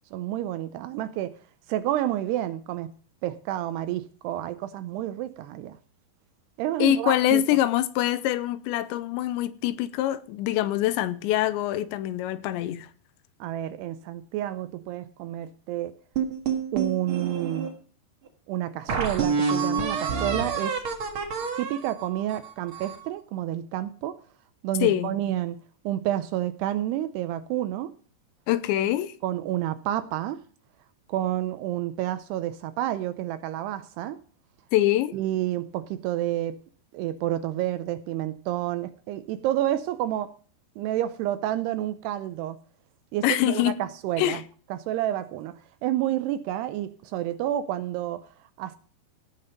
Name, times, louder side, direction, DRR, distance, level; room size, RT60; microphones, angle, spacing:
voice 1, 0.1-1.3 1.7-2.9 3.2-5.8 6.6-7.4 13.4-16.0 16.7-17.7 18.5-20.8 21.6-24.2 24.6-25.6 25.9-27.9 29.2-30.4 31.1-34.2 35.1-36.6 36.9-40.3 40.8-42.6 43.1-44.4 44.7-48.3 48.6-48.8, right 13 dB, 80° right, 2.5 m, -29 dB
voice 2, 6.8-12.9 24.8-25.1 28.5-29.1 34.7-35.2 43.2-43.8 44.2-44.4, left 13 dB, 85° left, 3.0 m, -24 dB
sound 1, 16.2-17.7 18.3-18.4 18.9-23.1, right 6 dB, 60° right, 1.3 m, -28 dB
17.0 x 5.9 x 5.2 m
omnidirectional pair, 5.1 m